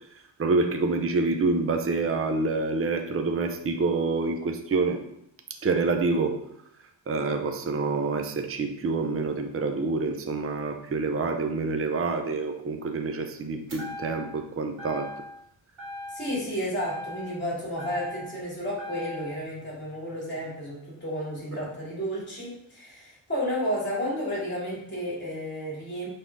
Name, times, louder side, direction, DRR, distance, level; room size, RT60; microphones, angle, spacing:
voice 1, 0.4-5.0 5.6-6.4 7.1-15.1, right 3 dB, 30° right, 5 dB, 0.6 m, -27 dB
sound 1, 13.7-14.4 14.8-15.4 15.8-16.5 16.8-18.4 18.8-19.4, left 1 dB, 85° right, 2.1 m, -39 dB
voice 2, 16.1-26.1, equal, 25° left, -5 dB, 2.7 m, -32 dB
6.1 x 3.6 x 5.3 m, 0.77 s
wide cardioid pair, 160°, 45 cm